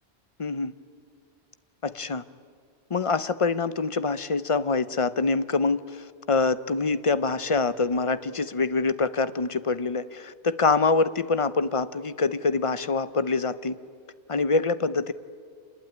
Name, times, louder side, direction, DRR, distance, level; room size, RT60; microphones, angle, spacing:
voice 1, 0.4-0.7 1.8-2.2 2.9-13.8 14.3-15.1, left 4 dB, 35° left, 14 dB, 0.7 m, -25 dB
27.0 x 20.5 x 9.6 m, 2.1 s
omnidirectional pair, 1.1 m